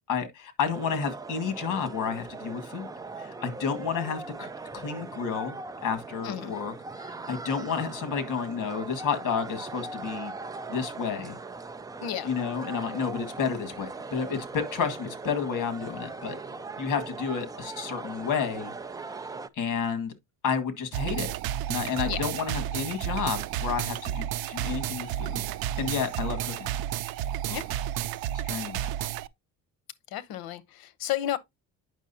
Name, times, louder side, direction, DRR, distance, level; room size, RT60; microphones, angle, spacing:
voice 1, 0.0-2.9 3.2-10.3 10.7-11.4 12.2-16.4 16.8-18.7 19.5-20.1 20.4-21.3 21.7-25.5 25.8-26.7 28.3-28.9, left 6 dB, 55° left, 2.0 m, -31 dB
sound 1, 0.7-19.5, right 3 dB, 10° right, 0.4 m, -40 dB
sound 2, 20.9-29.3, right 12 dB, 75° right, 0.6 m, -31 dB
voice 2, 30.1-31.4, left 12 dB, 75° left, 1.0 m, -32 dB
9.1 x 6.1 x 2.8 m
cardioid pair, 150°, 37 cm